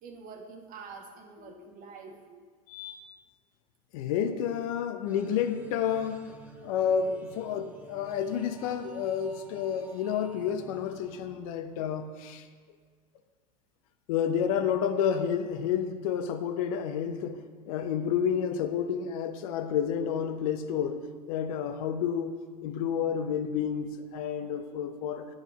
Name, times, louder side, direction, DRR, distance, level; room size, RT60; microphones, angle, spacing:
voice 1, 0.0-2.4, right 5 dB, 45° right, 4 dB, 1.2 m, -46 dB
voice 2, 2.7-3.1 3.9-6.2 6.6-12.5 14.1-25.3, left 8 dB, 65° left, 8 dB, 0.7 m, -30 dB
sound 1, 5.1-12.1, right 2 dB, 10° right, 1.0 m, -52 dB
9.6 x 6.5 x 3.0 m, 1.5 s
hypercardioid pair, 80°, 19 cm